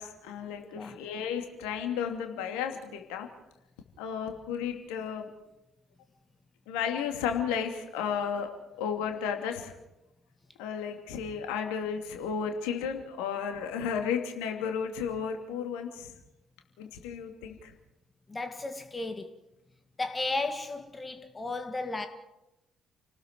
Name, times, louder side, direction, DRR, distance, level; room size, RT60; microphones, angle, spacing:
voice 1, 0.0-3.3 4.0-5.3 6.7-8.5 8.8-9.7 10.6-16.1 16.8-17.7, left 7 dB, 65° left, 2.8 m, -33 dB
voice 2, 18.3-19.3 20.0-22.1, left 2 dB, 25° left, 2.0 m, -34 dB
29.5 x 19.0 x 4.7 m
figure-of-eight pair, 45°, 0 cm